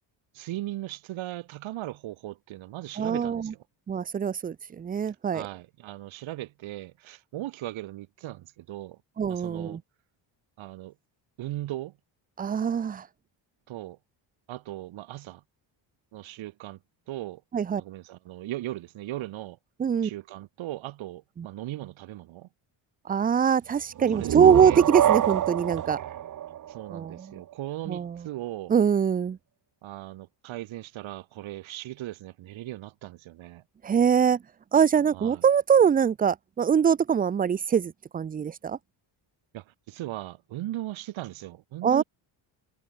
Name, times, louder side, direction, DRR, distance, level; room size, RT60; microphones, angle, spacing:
voice 1, 0.3-3.6 5.3-9.0 9.3-9.8 10.6-10.9 11.4-11.9 13.7-14.0 14.5-15.4 16.1-16.8 17.1-17.4 17.8-19.6 20.0-22.5 24.1-24.8 26.7-28.8 29.8-33.6 35.1-35.4 39.5-42.0, right 15 dB, 75° right, 4.1 m, -38 dB
voice 2, 3.0-3.5 3.9-5.5 9.2-9.8 12.4-13.1 17.5-17.8 19.8-20.1 21.4-21.5 23.1-26.0 26.9-27.4 27.9-28.2 28.7-29.4 33.8-34.4 34.7-38.8 41.8-42.0, right 7 dB, 20° right, 0.4 m, -23 dB
sound 1, 24.0-27.5, right 11 dB, 40° right, 0.9 m, -27 dB
cardioid pair, 155°, 47 cm